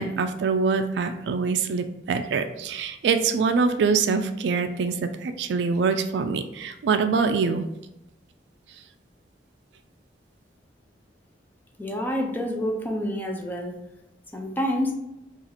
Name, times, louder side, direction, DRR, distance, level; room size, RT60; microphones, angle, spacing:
voice 1, 0.0-7.7, right 5 dB, 70° right, 8 dB, 0.3 m, -24 dB
voice 2, 11.8-13.7 14.3-14.9, equal, 10° left, 1 dB, 0.5 m, -28 dB
2.8 x 2.4 x 4.0 m, 0.89 s
head